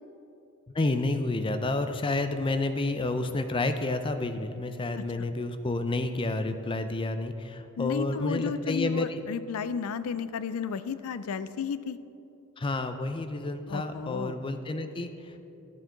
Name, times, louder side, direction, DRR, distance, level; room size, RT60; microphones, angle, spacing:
voice 1, 0.7-9.2 12.6-15.4, left 2 dB, 25° left, 9 dB, 0.5 m, -30 dB
voice 2, 5.0-5.3 7.8-12.0 13.7-14.3, left 6 dB, 80° left, 14 dB, 0.4 m, -33 dB
12.0 x 7.4 x 3.8 m, 2.7 s
head